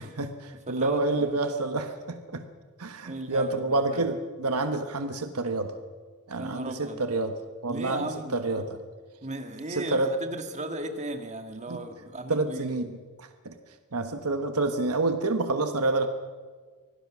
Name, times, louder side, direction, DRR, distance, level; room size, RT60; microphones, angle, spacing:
voice 1, 0.0-2.4 2.8-5.7 6.3-7.3 7.6-8.7 9.8-10.1 11.7-11.8 12.3-13.5 13.9-16.1, right 2 dB, 80° right, 7 dB, 1.3 m, -28 dB
voice 2, 0.7-1.4 3.0-4.1 6.4-7.0 7.7-8.7 9.2-12.7, right 2 dB, 30° right, 6 dB, 2.0 m, -36 dB
25.0 x 18.0 x 6.2 m, 1.5 s
head